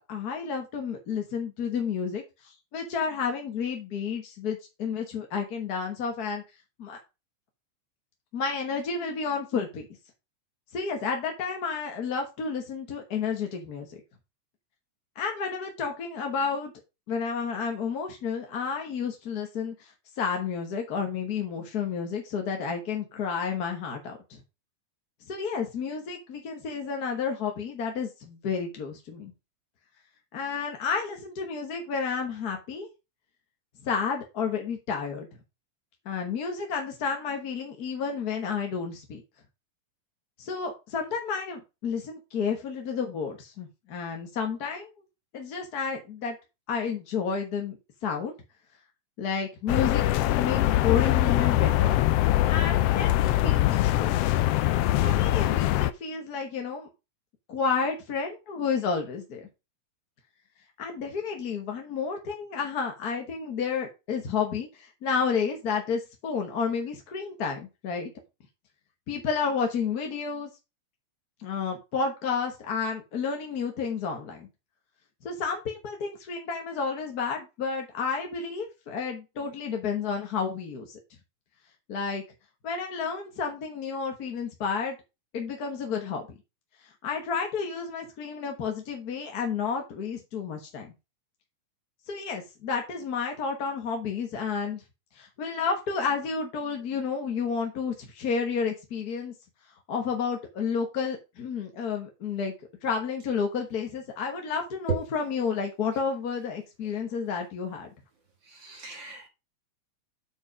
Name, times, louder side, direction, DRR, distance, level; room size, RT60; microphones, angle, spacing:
voice 1, 0.1-6.4 6.8-7.0 8.3-9.9 10.7-13.9 15.1-16.7 17.1-24.4 25.3-29.3 30.3-32.9 33.8-35.3 36.0-39.2 40.4-44.9 45.3-46.4 46.7-47.8 48.0-48.3 49.2-50.0 50.3-52.0 52.5-54.2 55.0-56.9 57.5-59.5 60.8-68.1 69.1-70.5 71.4-74.5 75.2-81.0 81.9-82.2 82.6-85.0 85.3-86.3 87.0-90.9 92.1-94.8 95.1-99.3 99.9-102.5 102.8-107.9, left 5 dB, 50° left, 3 dB, 1.2 m, -31 dB
sound 1, 49.7-55.9, left 15 dB, 85° left, 1.3 m, -23 dB
voice 2, 108.5-109.3, right 5 dB, 45° right, 2 dB, 2.1 m, -32 dB
8.0 x 4.9 x 4.9 m, 0.26 s
omnidirectional pair, 3.3 m